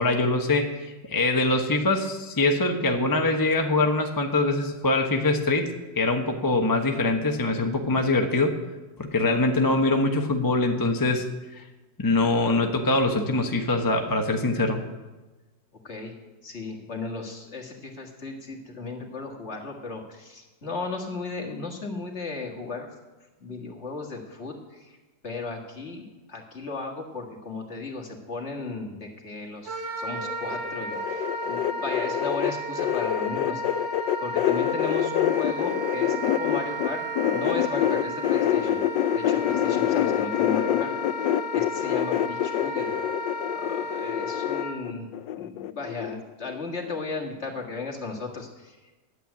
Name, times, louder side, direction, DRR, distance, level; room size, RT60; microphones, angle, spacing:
voice 1, 0.0-5.7 6.0-8.6 9.0-11.2 11.6-11.7 12.0-14.8, left 2 dB, 20° left, 3 dB, 0.6 m, -23 dB
voice 2, 16.4-22.9 23.4-25.0 25.2-33.8 34.2-38.8 39.1-40.9 41.2-42.9 43.5-45.1 45.4-48.9, left 3 dB, 40° left, 1 dB, 2.0 m, -35 dB
Wind instrument woodwind instrument, 29.6-44.7, equal, 90° right, 3.6 m, -33 dB
sound 1, 30.2-36.9 37.1-46.2 46.4-46.9 47.2-47.3, left 11 dB, 75° left, 1.2 m, -26 dB
11.0 x 9.0 x 8.2 m, 1.2 s
omnidirectional pair, 2.0 m